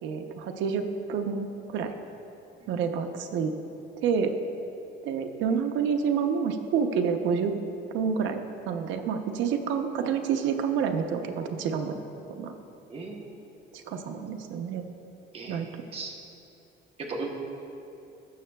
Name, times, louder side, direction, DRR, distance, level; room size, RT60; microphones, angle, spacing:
voice 1, 0.0-0.8 1.1-1.9 2.7-3.5 4.0-4.3 5.0-7.5 7.9-8.4 8.7-12.0 12.4-12.5 13.9-14.8 15.5-15.7, right 6 dB, 80° right, 6 dB, 0.7 m, -28 dB
voice 2, 12.9-13.3 15.3-16.1 17.0-17.3, right 3 dB, 30° right, 0 dB, 1.0 m, -37 dB
16.0 x 6.6 x 2.3 m, 2.8 s
cardioid pair, 170°, 19 cm